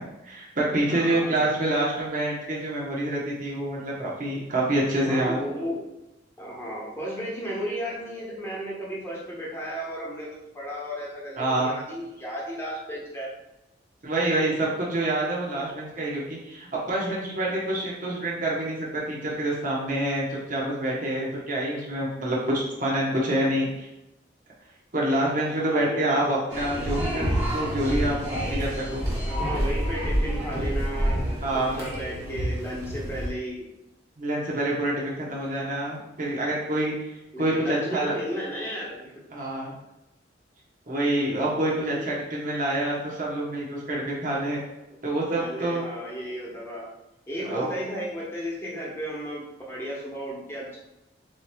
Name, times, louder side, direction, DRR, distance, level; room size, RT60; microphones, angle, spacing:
voice 1, 0.0-5.4 11.4-11.7 14.0-23.9 24.9-29.1 29.5-29.7 31.4-31.8 34.2-38.1 39.3-39.7 40.9-44.6 45.0-45.8 47.4-47.7, right 1 dB, 45° right, -4 dB, 1.0 m, -27 dB
voice 2, 0.8-1.4 5.0-5.8 6.4-10.3 10.5-13.3 25.5-26.0 29.2-31.2 31.5-33.7 37.3-39.2 41.8-42.1 45.3-46.9 47.3-50.8, equal, 15° left, -6 dB, 1.1 m, -34 dB
sound 1, 26.5-33.3, equal, 15° right, 1.2 m, -28 dB
7.3 x 3.0 x 2.3 m, 0.93 s
head